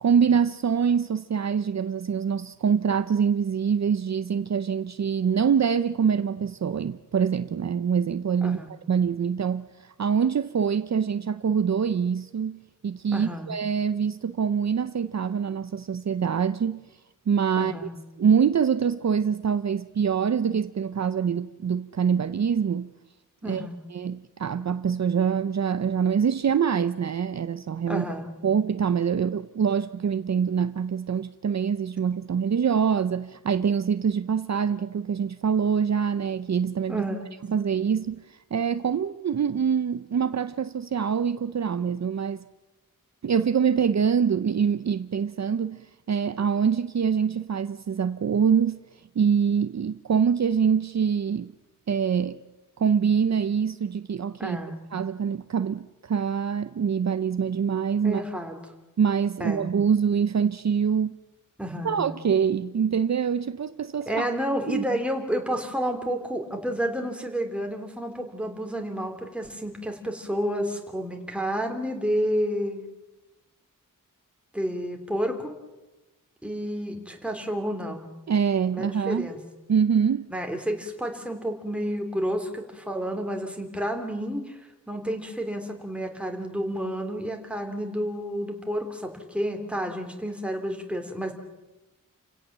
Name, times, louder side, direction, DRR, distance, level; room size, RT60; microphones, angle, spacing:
voice 1, 0.0-8.6 8.9-16.8 17.3-17.7 18.2-22.9 23.4-23.7 23.9-28.0 28.4-37.0 37.5-42.4 43.2-48.8 49.2-51.5 51.9-52.4 52.8-54.6 54.9-58.2 59.0-61.2 61.8-64.3 64.7-64.8 78.3-79.3 79.7-80.3, right 7 dB, 55° right, 0.7 m, -25 dB
voice 2, 8.4-8.7 13.1-13.5 17.6-17.9 23.4-23.8 27.9-28.3 36.9-37.3 54.4-54.8 58.0-58.6 59.4-59.7 61.6-62.1 64.1-72.8 74.5-75.5 76.4-78.1 78.7-79.4 80.3-91.3, equal, 5° right, 3.2 m, -30 dB
29.0 x 17.0 x 7.4 m
wide cardioid pair, 135°, 33 cm